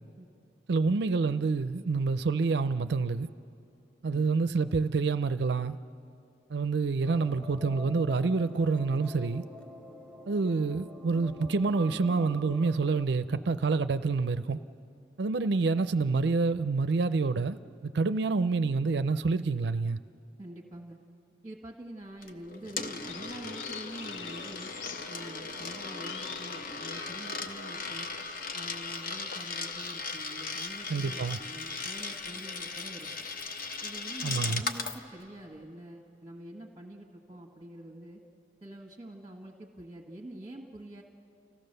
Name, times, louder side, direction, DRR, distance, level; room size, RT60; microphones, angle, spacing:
voice 1, 0.7-3.3 4.0-5.8 6.5-9.4 10.3-14.6 15.2-20.0 30.9-31.4 34.2-34.6, right 4 dB, 65° right, 0.5 m, -27 dB
sound 1, 7.0-13.1, left 2 dB, 5° left, 0.8 m, -45 dB
voice 2, 20.4-21.0 21.4-24.7 25.1-28.1 28.5-33.3 33.8-38.2 38.6-41.0, right 1 dB, 20° right, 1.5 m, -46 dB
Coin (dropping), 22.2-35.0, left 4 dB, 50° left, 0.9 m, -38 dB
sound 2, 23.1-30.0, left 7 dB, 90° left, 0.7 m, -47 dB
30.0 x 15.5 x 6.7 m
head